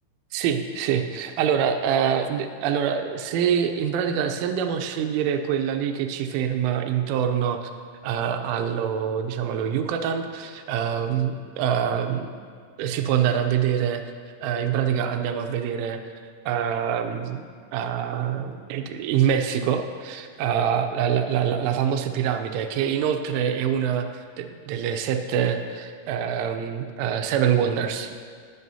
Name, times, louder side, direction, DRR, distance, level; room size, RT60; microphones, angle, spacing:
voice 1, 0.3-7.7 8.0-12.3 12.8-14.0 14.4-16.0 16.5-17.4 17.7-28.1, right 8 dB, 85° right, 6 dB, 3.2 m, -25 dB
20.0 x 8.2 x 2.8 m, 2.1 s
omnidirectional pair, 5.5 m